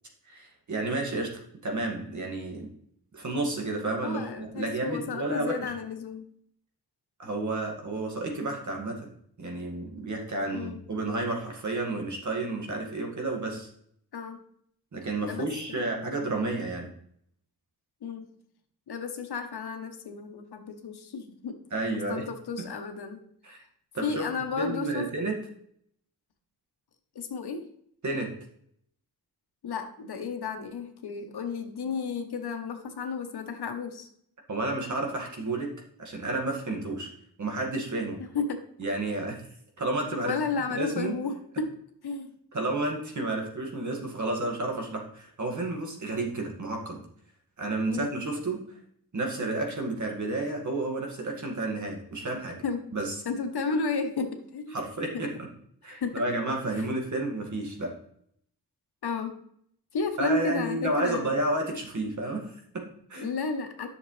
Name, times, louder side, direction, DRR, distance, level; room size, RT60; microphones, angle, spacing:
voice 1, 0.3-2.7 3.1-5.6 7.2-9.1 9.4-13.7 14.9-16.9 21.7-22.2 22.6-22.7 23.4-23.6 23.9-24.2 24.6-25.4 28.0-28.3 34.5-35.7 36.0-37.1 37.4-38.2 38.8-39.4 39.8-40.3 40.7-41.1 42.5-47.0 47.6-48.6 49.1-52.6 52.9-53.1 54.7-55.3 55.8-57.9 60.2-63.3, right 2 dB, 50° right, 1 dB, 2.0 m, -31 dB
voice 2, 4.0-6.3 10.5-10.8 14.1-14.4 15.3-16.0 18.0-18.3 18.9-21.6 22.1-23.2 24.0-25.1 27.1-27.6 29.6-34.1 38.2-38.6 40.2-41.7 42.0-42.3 47.9-48.1 52.3-52.8 53.2-54.7 55.1-55.2 55.9-56.2 59.0-59.4 59.9-61.5 63.2-63.9, left 4 dB, 90° left, 6 dB, 1.2 m, -33 dB
10.5 x 6.5 x 3.3 m, 0.67 s
wide cardioid pair, 150°, 38 cm